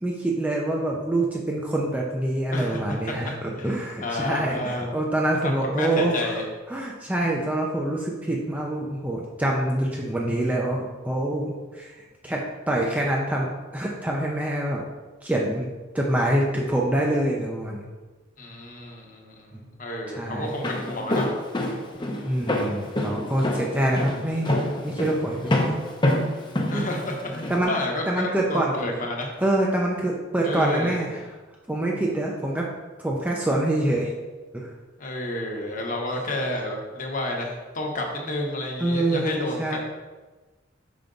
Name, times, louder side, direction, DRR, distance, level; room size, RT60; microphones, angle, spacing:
voice 1, 0.0-6.4 6.7-11.9 12.2-14.8 15.2-15.7 15.9-17.8 20.1-20.5 22.2-24.5 24.8-25.7 26.7-26.9 27.5-27.7 28.1-28.7 29.4-31.3 31.7-32.7 33.0-34.1 34.5-34.7 38.8-39.8, right 1 dB, 10° right, -2 dB, 0.6 m, -25 dB
voice 2, 2.5-3.1 3.6-4.9 5.4-6.4 18.4-21.3 26.7-29.3 30.4-31.1 35.0-39.8, left 1 dB, 40° left, 0 dB, 1.1 m, -30 dB
Walk footsteps, 20.4-27.6, left 1 dB, 25° left, 0.7 m, -26 dB
5.7 x 5.2 x 3.8 m, 1.2 s
head